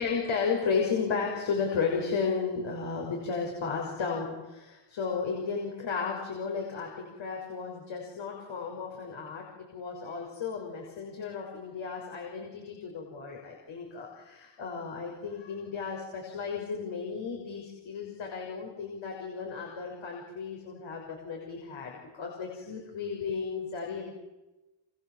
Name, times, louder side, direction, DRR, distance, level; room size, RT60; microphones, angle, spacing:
voice 1, 0.0-9.5 9.7-24.1, left 5 dB, 70° left, 0 dB, 6.5 m, -34 dB
28.0 x 27.5 x 7.6 m, 1.1 s
wide cardioid pair, 135°, 48 cm